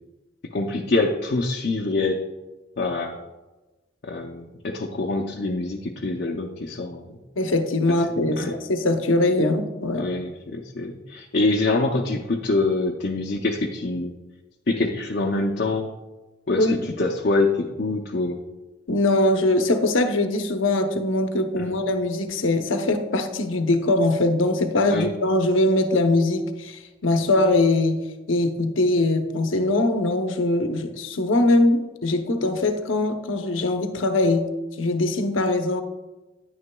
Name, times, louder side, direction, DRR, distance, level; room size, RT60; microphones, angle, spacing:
voice 1, 0.5-2.2 2.8-3.2 4.0-7.2 8.4-8.5 10.0-14.1 14.7-15.9 16.5-18.4 21.6-21.7 24.9-25.1, left 2 dB, 50° left, 0 dB, 0.6 m, -25 dB
voice 2, 7.4-10.1 16.6-16.8 18.9-28.0 28.3-34.5 34.8-35.8, left 2 dB, 80° left, 6 dB, 0.8 m, -22 dB
9.7 x 9.7 x 2.3 m, 1.1 s
head